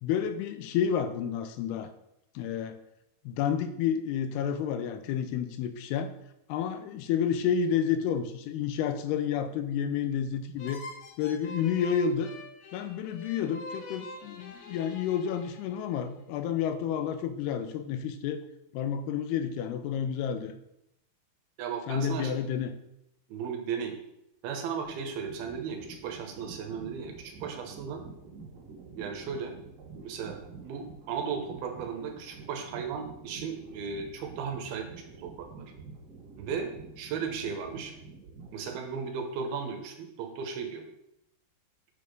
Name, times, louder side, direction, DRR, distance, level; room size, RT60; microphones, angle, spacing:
voice 1, 0.0-1.9 2.4-2.8 3.3-6.1 6.5-10.8 11.2-12.3 12.7-18.4 18.7-20.5 21.9-22.7, left 8 dB, 85° left, 9 dB, 2.7 m, -30 dB
sound 1, 10.6-16.1, left 2 dB, 70° left, 1.6 m, -45 dB
voice 2, 21.6-22.3 23.3-24.0 24.4-28.0 29.0-29.5 30.0-35.6 36.4-36.7 37.0-37.9 38.5-40.9, right 6 dB, 75° right, 4 dB, 2.8 m, -36 dB
sound 2, 24.8-39.1, right 4 dB, 55° right, 2.7 m, -48 dB
6.9 x 6.4 x 5.2 m, 0.80 s
omnidirectional pair, 4.6 m